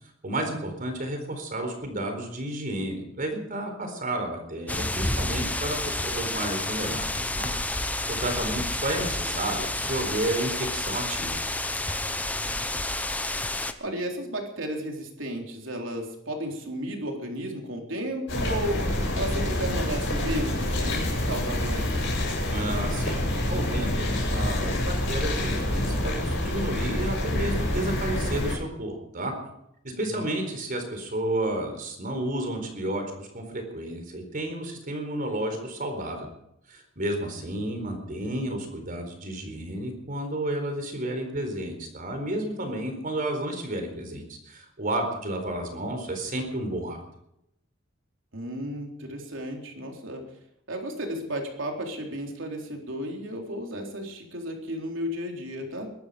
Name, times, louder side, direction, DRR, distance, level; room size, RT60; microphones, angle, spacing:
voice 1, 0.2-7.5 8.1-11.4 22.5-29.3 29.8-36.3 36.7-47.0, right 1 dB, 45° right, 5 dB, 4.3 m, -31 dB
sound 1, 4.7-13.7, left 2 dB, 10° left, 0.9 m, -30 dB
voice 2, 13.8-22.2 29.9-30.3 37.6-37.7 48.3-50.3 50.7-55.9, equal, 70° right, 2 dB, 3.9 m, -34 dB
sound 2, 18.3-28.6, left 1 dB, 65° left, 7.5 m, -27 dB
22.5 x 12.5 x 5.2 m, 0.78 s
head